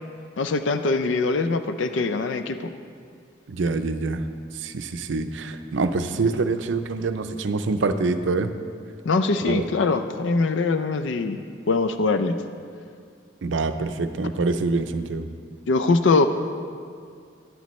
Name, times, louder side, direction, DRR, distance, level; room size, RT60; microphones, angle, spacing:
voice 1, 0.4-2.7 9.1-12.4 15.7-16.3, left 3 dB, 70° left, 9 dB, 0.4 m, -22 dB
voice 2, 3.5-4.2 4.6-8.5 9.5-9.6 13.4-15.3, right 3 dB, 70° right, 9 dB, 0.5 m, -25 dB
13.5 x 9.2 x 3.1 m, 2.2 s
head